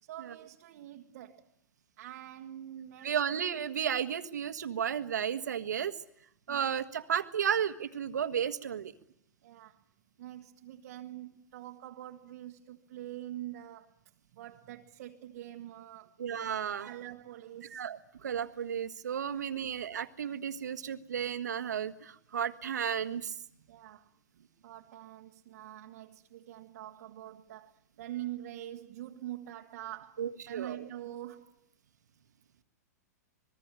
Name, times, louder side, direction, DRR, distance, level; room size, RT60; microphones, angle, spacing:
voice 1, 0.0-1.5 2.0-3.4 6.5-6.6 9.4-9.8 10.2-14.0 14.3-16.2 16.8-17.8 19.6-19.7 23.7-24.1 24.6-31.7, right 13 dB, 60° right, 1.5 m, -45 dB
voice 2, 3.0-5.9 6.5-8.9 16.2-16.9 17.7-23.3 30.2-30.8, right 8 dB, 80° right, 1.6 m, -33 dB
26.0 x 21.5 x 8.9 m
hypercardioid pair, 115°, 9 cm